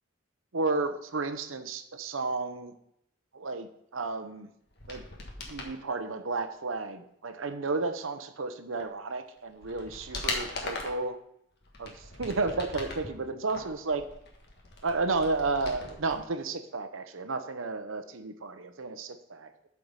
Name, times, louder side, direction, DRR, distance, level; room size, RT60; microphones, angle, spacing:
voice 1, 0.5-2.7 3.3-4.5 4.9-5.0 5.5-11.2 11.8-14.0 14.8-19.7, right 3 dB, 90° right, 9 dB, 0.8 m, -32 dB
sound 1, 4.7-5.7 8.8-8.9 9.4-11.1 11.6-13.1 13.5-16.2 16.4-16.5, left 2 dB, 60° left, 1.5 m, -39 dB
8.8 x 4.8 x 5.4 m, 0.74 s
head